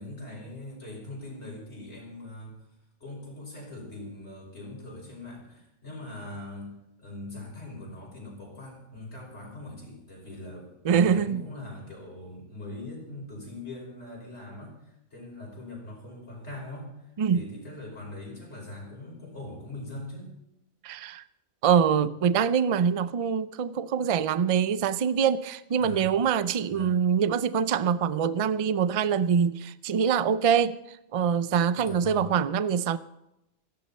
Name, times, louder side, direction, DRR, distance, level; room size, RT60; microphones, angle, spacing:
voice 1, 0.0-2.6 3.0-6.7 7.0-14.8 15.1-16.9 17.3-20.3 25.8-26.2 26.7-27.0 31.7-32.3, left 2 dB, 65° left, 5.9 m, -41 dB
voice 2, 10.8-11.5 17.2-17.4 20.8-21.2 21.6-33.0, right 7 dB, 50° right, 0.4 m, -24 dB
17.0 x 14.5 x 4.3 m
omnidirectional pair, 1.2 m